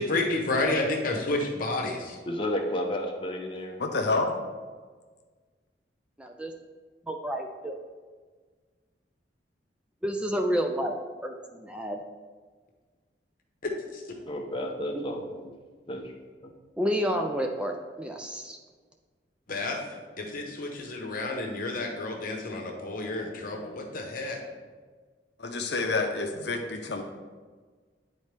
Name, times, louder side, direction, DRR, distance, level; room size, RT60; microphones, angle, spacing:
voice 1, 0.0-2.2 13.9-14.0 19.5-19.8 20.2-24.4, left 2 dB, 50° left, 1 dB, 1.0 m, -30 dB
voice 2, 2.3-3.8 14.3-15.5 15.9-16.1 16.4-16.5, equal, 30° left, 1 dB, 0.8 m, -32 dB
voice 3, 3.8-4.3 25.4-27.0, left 3 dB, 65° left, 4 dB, 0.6 m, -28 dB
voice 4, 6.2-6.5 7.1-7.8 10.0-12.0 14.9-15.1 16.8-18.6, equal, 5° right, 3 dB, 0.4 m, -30 dB
9.9 x 4.1 x 3.4 m, 1.5 s
head